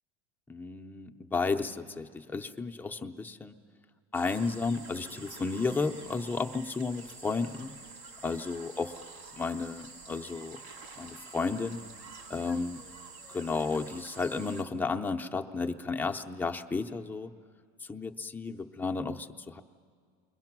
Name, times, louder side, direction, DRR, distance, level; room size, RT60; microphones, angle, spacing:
voice 1, 0.5-3.5 4.1-7.7 8.2-8.9 9.4-10.6 11.0-11.8 12.3-12.8 13.3-17.3 17.8-19.6, left 4 dB, 5° left, 4 dB, 0.6 m, -33 dB
sound 1, 4.1-14.6, right 3 dB, 85° right, 2.4 m, -48 dB
28.5 x 22.0 x 6.0 m, 2.1 s
cardioid pair, 150°, 30 cm